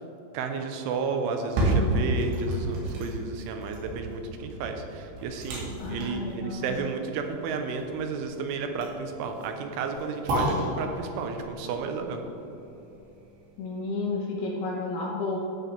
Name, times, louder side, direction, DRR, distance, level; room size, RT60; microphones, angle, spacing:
voice 1, 0.3-12.2, right 4 dB, 90° right, 5 dB, 3.2 m, -32 dB
sound 1, 1.3-13.3 13.7-13.8, right 1 dB, 65° right, 4.1 m, -31 dB
voice 2, 5.8-6.7 13.6-15.5, left 3 dB, 75° left, -2 dB, 2.5 m, -31 dB
13.0 x 9.3 x 3.4 m, 3.0 s
omnidirectional pair, 5.6 m